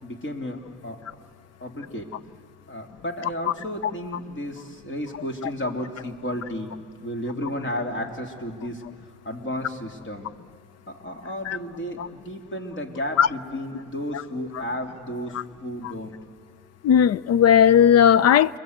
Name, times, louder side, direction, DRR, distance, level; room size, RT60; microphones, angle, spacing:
voice 1, 0.0-1.2 1.6-2.1 2.7-6.7 7.0-8.8 9.2-10.3 10.9-16.1, left 1 dB, 40° left, 3.1 m, -33 dB
voice 2, 16.8-18.6, left 9 dB, 55° left, 0.6 m, -16 dB
30.0 x 22.0 x 8.0 m
cardioid pair, 90°, 30 cm